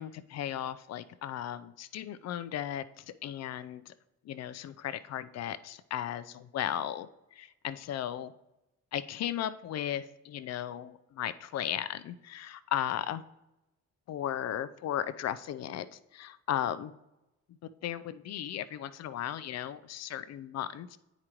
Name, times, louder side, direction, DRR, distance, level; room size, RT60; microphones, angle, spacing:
voice 1, 0.0-3.9 4.2-8.3 8.9-13.2 14.1-16.9 17.8-21.0, left 11 dB, 60° left, 15 dB, 0.5 m, -36 dB
9.5 x 5.0 x 3.0 m, 0.94 s
cardioid pair, 90°, 30 cm